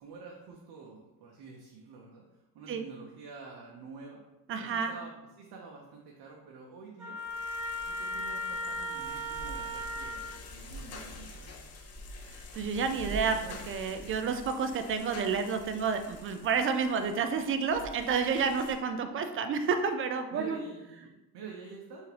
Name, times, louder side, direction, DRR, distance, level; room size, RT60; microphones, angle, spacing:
voice 1, 0.0-2.2 2.5-4.2 4.6-7.2 7.8-11.7 12.9-13.6 20.3-22.1, right 4 dB, 60° right, -1 dB, 0.7 m, -48 dB
voice 2, 4.5-5.0 12.3-13.4 13.7-20.6, right 5 dB, 30° right, 7 dB, 0.4 m, -30 dB
Trumpet, 7.0-10.4, equal, 5° right, 0.9 m, -36 dB
sound 1, 7.2-18.8, left 1 dB, 35° left, 0.6 m, -46 dB
3.3 x 2.7 x 3.2 m, 1.0 s
supercardioid pair, 80°, 43 cm